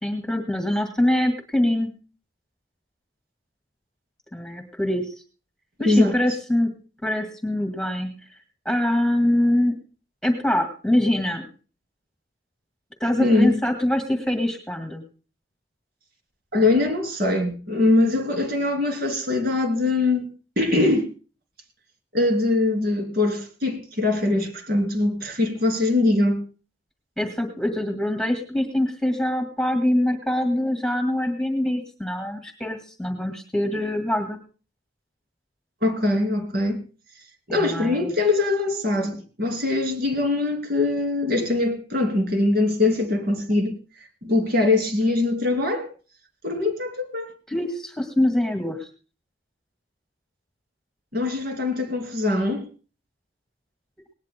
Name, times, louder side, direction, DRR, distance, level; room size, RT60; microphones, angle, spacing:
voice 1, 0.0-1.9 4.3-5.1 5.8-6.7 7.0-8.1 8.7-9.8 10.2-11.5 13.0-15.0 27.2-34.4 37.5-38.1 47.5-48.9, left 1 dB, 5° left, 2.1 m, -24 dB
voice 2, 5.8-6.1 13.2-13.6 16.5-20.3 20.6-21.1 22.1-26.4 35.8-36.8 37.5-43.8 44.2-45.9 46.4-47.3 51.1-52.7, left 2 dB, 55° right, 3.1 m, -22 dB
20.0 x 19.0 x 2.3 m
head